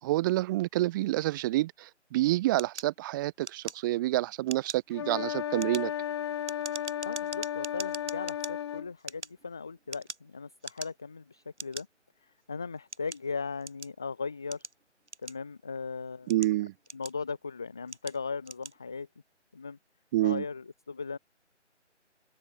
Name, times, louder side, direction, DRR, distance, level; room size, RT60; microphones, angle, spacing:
voice 1, 0.0-5.9 16.3-16.7 20.1-20.4, right 16 dB, 15° right, 3.0 m, -28 dB
sound 1, 2.6-4.1 4.4-4.9 5.4-8.5 9.0-10.3 10.6-11.1 11.6-11.8 12.5-14.0 14.5-15.7 16.1-17.4 17.9-18.2 18.4-18.8, right 3 dB, 70° right, 6.9 m, -42 dB
sound 2, 4.9-8.9, left 10 dB, 20° left, 1.9 m, -34 dB
voice 2, 7.0-11.9 12.2-14.6 15.2-16.5 16.9-19.1 19.5-19.8 20.2-21.2, left 4 dB, 5° left, 0.7 m, -38 dB
figure-of-eight pair, 155°, 36 cm